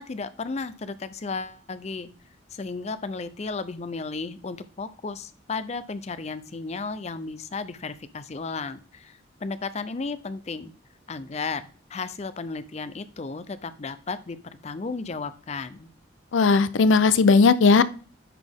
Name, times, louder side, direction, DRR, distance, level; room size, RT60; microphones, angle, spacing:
voice 1, 0.0-2.1 2.5-10.7 11.1-11.6 11.9-14.4 14.6-15.9, left 4 dB, 35° left, 14 dB, 0.5 m, -34 dB
voice 2, 16.3-17.8, left 4 dB, 85° left, 15 dB, 0.5 m, -17 dB
10.0 x 4.1 x 3.5 m, 0.41 s
head